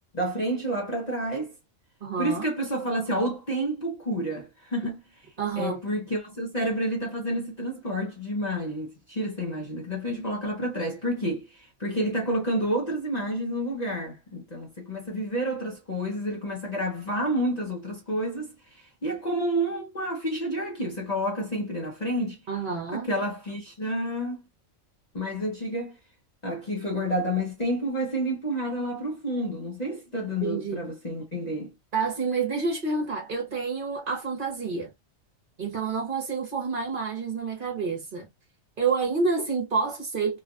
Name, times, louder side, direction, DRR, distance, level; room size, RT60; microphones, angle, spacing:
voice 1, 0.1-1.5 2.2-5.0 5.6-22.4 22.9-24.4 25.1-26.0 26.4-31.7, equal, 35° left, 0.8 m, -29 dB
voice 2, 2.0-2.5 5.4-5.8 22.5-23.1 30.4-30.8 31.9-34.9 35.6-38.3 38.8-40.4, right 4 dB, 45° right, 1.1 m, -28 dB
3.2 x 2.4 x 2.4 m
omnidirectional pair, 1.4 m